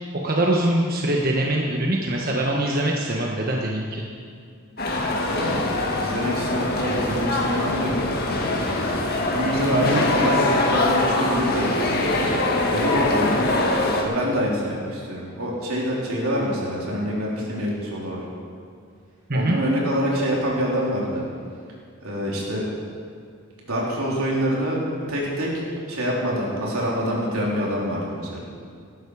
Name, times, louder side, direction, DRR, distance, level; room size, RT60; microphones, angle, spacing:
voice 1, 0.2-4.1 9.7-10.0 19.3-19.6, right 1 dB, 45° right, -1 dB, 1.3 m, -23 dB
sound 1, 4.8-14.0, left 2 dB, 45° left, 1.8 m, -23 dB
voice 2, 5.2-5.6 6.0-7.9 9.1-13.4 14.0-18.2 19.3-21.2 22.0-22.6 23.6-24.8 25.1-25.5 25.9-28.4, equal, 85° right, -4 dB, 3.9 m, -26 dB
18.5 x 12.0 x 5.0 m, 2.3 s
head